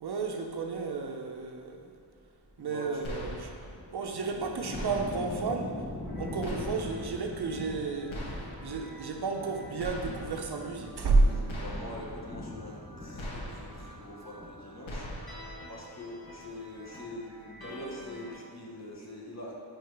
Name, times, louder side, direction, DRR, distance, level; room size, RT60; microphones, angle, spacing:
voice 1, 0.0-1.9 2.6-3.5 3.9-5.8 6.2-8.2 8.6-11.3, right 3 dB, 55° right, 3 dB, 0.6 m, -31 dB
voice 2, 2.6-2.9 11.0-15.1 15.7-19.5, left 1 dB, 35° left, -2 dB, 1.0 m, -44 dB
sound 1, 3.0-3.7 4.7-5.4 6.4-7.1 8.1-8.8 9.8-10.5 11.5-12.2 13.2-13.9 14.9-15.6, equal, 85° left, 1.2 m, -40 dB
sound 2, 3.2-15.7 16.0-16.7, left 2 dB, 10° left, 1.2 m, -43 dB
sound 3, 6.0-18.3, right 1 dB, 50° left, 1.2 m, -51 dB
4.7 x 4.7 x 4.6 m, 2.3 s
wide cardioid pair, 120°, 46 cm